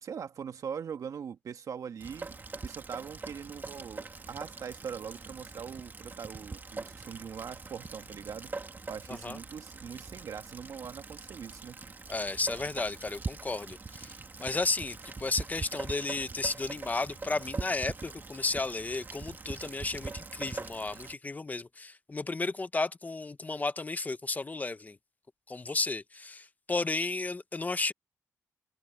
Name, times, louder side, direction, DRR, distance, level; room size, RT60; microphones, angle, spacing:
voice 1, 0.0-8.5 8.9-11.8, right 7 dB, 65° right, 1.8 m, -42 dB
Rain, 2.0-21.2, right 3 dB, 30° right, 2.1 m, -43 dB
voice 2, 12.1-14.1 14.4-25.0 25.5-27.9, left 3 dB, 25° left, 1.0 m, -33 dB
cardioid pair, 90°, 6 cm